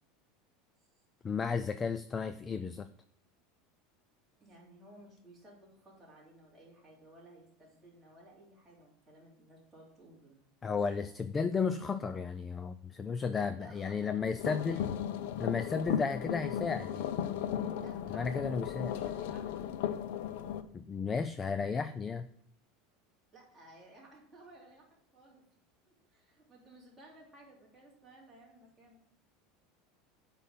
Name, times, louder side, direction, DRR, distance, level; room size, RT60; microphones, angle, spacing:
voice 1, 1.2-2.9 10.6-14.8 15.4-17.0 18.1-18.9 20.7-22.3, left 5 dB, 15° left, 12 dB, 0.3 m, -33 dB
voice 2, 4.4-10.4 13.6-14.3 14.7-15.0 17.8-19.9 23.3-24.8 25.1-25.4 25.9-29.0, right 1 dB, 5° right, -6 dB, 3.1 m, -57 dB
sound 1, 14.4-20.6, left 9 dB, 70° left, 0.6 m, -36 dB
8.3 x 5.3 x 7.3 m, 0.64 s
supercardioid pair, 170°, 0 cm